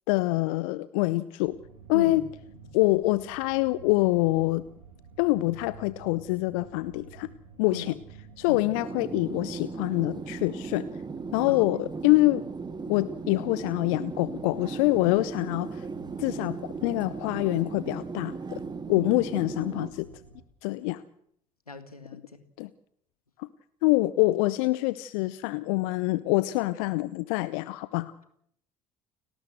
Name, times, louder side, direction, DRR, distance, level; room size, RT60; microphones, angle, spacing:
voice 1, 0.1-1.6 1.9-2.2 2.7-4.6 5.2-7.3 7.6-7.9 8.4-10.9 11.3-12.4 12.9-15.9 16.2-18.6 18.9-20.1 20.6-21.0 22.6-22.7 23.4-23.5 23.8-28.1, left 20 dB, 65° left, 16 dB, 0.8 m, -25 dB
sound 1, 1.4-20.5, right 6 dB, 80° right, 2.9 m, -51 dB
sound 2, 8.7-19.9, right 4 dB, 25° right, 1.4 m, -37 dB
voice 2, 21.7-22.4, left 3 dB, 90° left, 10 dB, 1.9 m, -38 dB
30.0 x 12.5 x 7.8 m, 0.69 s
figure-of-eight pair, 55°, 18 cm